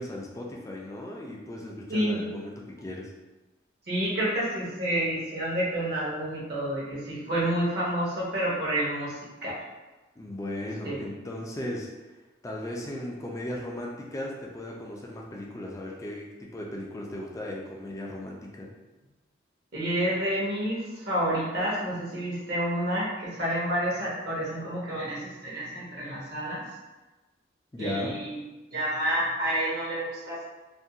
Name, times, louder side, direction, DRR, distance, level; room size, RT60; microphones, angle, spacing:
voice 1, 0.0-3.1 10.2-11.9 12.4-18.7 27.7-28.1, left 1 dB, 15° left, -1 dB, 0.3 m, -36 dB
voice 2, 3.9-9.5 10.8-11.0 19.7-26.6 27.8-28.4 28.7-30.4, right 1 dB, 55° right, -6 dB, 0.8 m, -29 dB
2.5 x 2.2 x 2.7 m, 1.2 s
head